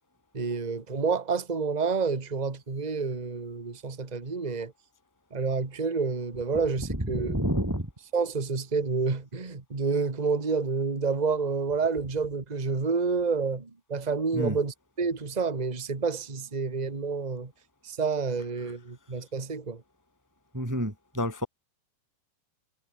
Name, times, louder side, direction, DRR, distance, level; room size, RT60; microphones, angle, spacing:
voice 1, 0.3-4.7 5.3-7.4 8.1-17.5 17.8-19.8, right 4 dB, 35° right, 0.6 m, -29 dB
voice 2, 6.9-7.9 14.3-14.6 18.6-18.7 20.5-21.5, equal, 5° right, 1.6 m, -29 dB
omnidirectional pair, 4.4 m